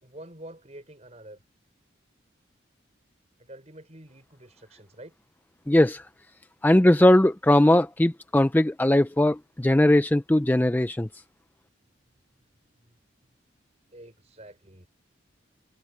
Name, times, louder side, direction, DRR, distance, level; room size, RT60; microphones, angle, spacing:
voice 1, 0.0-1.4 3.4-5.1 12.6-13.0 13.9-14.9, right 1 dB, 35° right, 5.8 m, -47 dB
voice 2, 5.7-6.1 6.6-11.1, left 1 dB, 10° left, 0.4 m, -20 dB
head